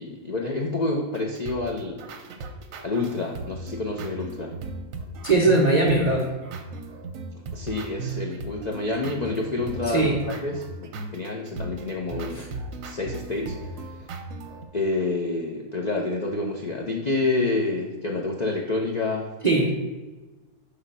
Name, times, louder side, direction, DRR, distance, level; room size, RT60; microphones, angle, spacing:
voice 1, 0.0-2.0 2.8-4.5 7.3-12.4 12.8-13.7 14.7-19.3, left 3 dB, 70° left, 0 dB, 0.4 m, -28 dB
sound 1, 1.1-14.7, right 3 dB, 70° right, 1.0 m, -37 dB
voice 2, 5.2-6.3 9.9-10.2 19.4-19.7, right 2 dB, 50° right, -2 dB, 0.5 m, -19 dB
4.9 x 3.6 x 5.5 m, 1.2 s
omnidirectional pair, 1.6 m